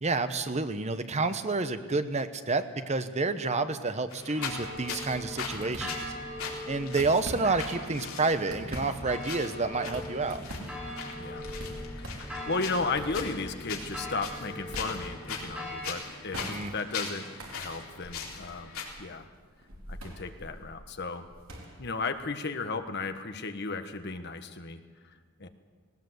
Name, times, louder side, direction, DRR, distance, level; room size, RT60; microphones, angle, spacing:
voice 1, 0.0-6.0 6.7-10.4 16.5-16.7, right 3 dB, 30° right, 10 dB, 0.9 m, -29 dB
sound 1, 4.1-18.9, left 5 dB, 70° left, 3.9 m, -41 dB
sound 2, 4.4-15.9, left 1 dB, 5° right, 3.0 m, -41 dB
sound 3, 5.5-6.4 6.8-7.8 8.2-23.1, right 1 dB, 65° right, 4.2 m, -45 dB
voice 2, 10.7-11.4 12.0-17.3 17.5-18.7 19.0-19.3 19.9-21.3 21.8-25.5, left 3 dB, 50° left, 8 dB, 1.4 m, -35 dB
19.0 x 19.0 x 8.0 m, 1.5 s
head